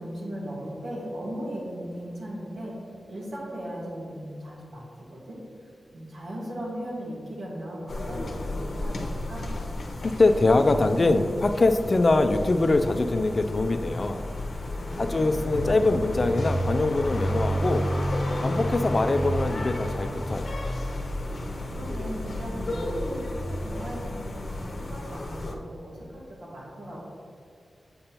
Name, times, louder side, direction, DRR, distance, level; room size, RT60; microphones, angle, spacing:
voice 1, 0.0-2.7 3.1-4.8 5.1-5.4 5.9-9.5 14.7-15.4 21.4-27.1, equal, 85° right, -5 dB, 1.6 m, -37 dB
sound 1, 7.9-25.5, left 1 dB, 65° left, 0.8 m, -31 dB
voice 2, 10.2-14.2 15.0-17.9 18.4-20.5, left 2 dB, 45° left, 8 dB, 0.4 m, -23 dB
7.8 x 5.2 x 2.9 m, 2.2 s
cardioid pair, 55°, 0 cm